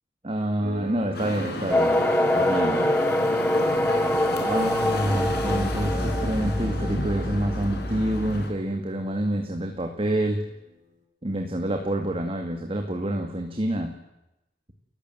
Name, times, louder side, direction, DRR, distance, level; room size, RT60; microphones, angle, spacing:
voice 1, 0.2-2.9 4.4-10.4 11.2-13.9, right 1 dB, 35° right, 4 dB, 2.2 m, -27 dB
sound 1, 0.6-10.9, equal, 50° right, 4.3 m, -45 dB
sound 2, 1.1-8.5, left 1 dB, 65° left, 4.9 m, -33 dB
sound 3, 1.7-8.4, left 1 dB, 10° left, 1.3 m, -25 dB
29.5 x 15.5 x 7.9 m, 0.92 s
head